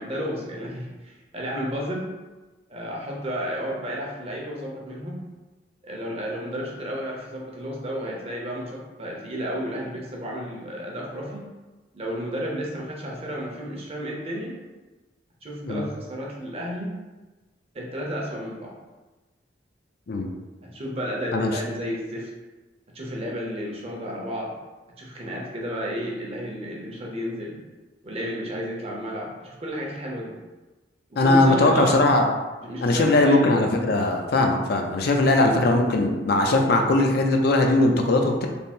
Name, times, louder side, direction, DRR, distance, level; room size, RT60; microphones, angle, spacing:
voice 1, 0.0-2.1 2.7-5.3 5.8-11.5 11.9-14.5 15.4-16.9 17.7-18.8 20.6-22.3 22.9-24.5 25.0-27.6 28.0-30.3 31.1-32.0 32.6-33.5, equal, 35° right, -2 dB, 0.7 m, -32 dB
voice 2, 31.2-32.2 32.8-38.5, left 2 dB, 60° left, 3 dB, 0.5 m, -20 dB
3.5 x 2.0 x 4.2 m, 1.2 s
head